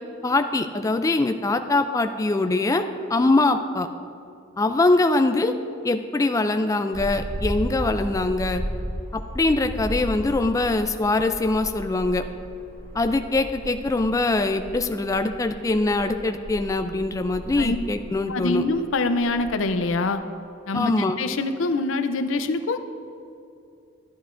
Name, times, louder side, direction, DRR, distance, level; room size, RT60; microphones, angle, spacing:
voice 1, 0.2-3.9 4.6-5.5 5.8-8.6 9.3-12.2 12.9-18.6 20.7-21.2, left 2 dB, 15° left, 7 dB, 0.3 m, -23 dB
sound 1, 6.9-20.1, equal, 55° right, 1.8 m, -35 dB
voice 2, 18.3-20.2 20.7-22.8, left 3 dB, 85° left, 9 dB, 0.5 m, -25 dB
12.0 x 10.5 x 2.5 m, 2.5 s
head